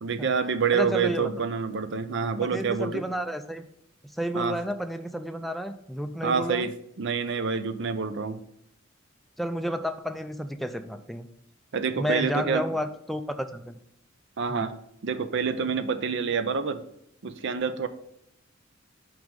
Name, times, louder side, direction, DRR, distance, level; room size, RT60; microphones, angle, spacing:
voice 1, 0.0-3.0 4.3-4.6 6.2-8.4 11.7-12.6 14.4-14.7 15.0-16.8 17.2-17.9, right 5 dB, 65° right, 12 dB, 0.5 m, -27 dB
voice 2, 0.7-1.3 2.5-3.6 4.1-6.7 9.4-11.3 12.0-13.7 14.5-14.7, equal, ahead, 7 dB, 0.3 m, -31 dB
6.0 x 5.1 x 3.7 m, 0.77 s
head